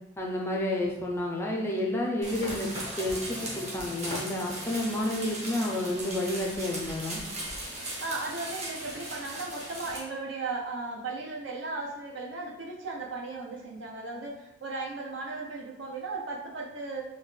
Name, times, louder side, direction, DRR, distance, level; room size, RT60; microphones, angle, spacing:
voice 1, 0.2-2.7 3.0-7.2, left 1 dB, 10° left, -2 dB, 0.4 m, -30 dB
sound 1, 2.2-10.0, right 1 dB, 35° right, 0.9 m, -38 dB
voice 2, 8.0-17.0, right 3 dB, 65° right, 0 dB, 0.6 m, -36 dB
3.8 x 2.2 x 3.2 m, 0.96 s
head